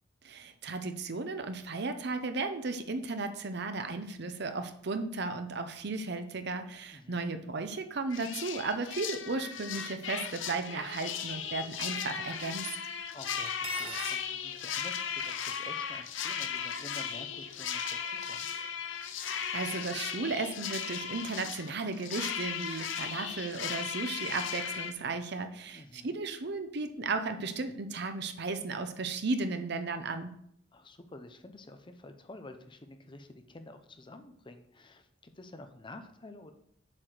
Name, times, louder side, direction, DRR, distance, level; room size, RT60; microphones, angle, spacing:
voice 1, 0.2-12.7 19.2-30.3, right 3 dB, 60° right, 8 dB, 0.8 m, -35 dB
voice 2, 6.9-7.2 13.1-18.5 25.7-26.1 30.7-36.5, left 2 dB, 25° left, 8 dB, 0.7 m, -50 dB
sound 1, 8.1-24.9, left 7 dB, 85° left, 0.7 m, -37 dB
Cutlery silverware, 13.5-14.2, right 9 dB, 30° right, 0.4 m, -42 dB
7.4 x 4.8 x 6.5 m, 0.72 s
head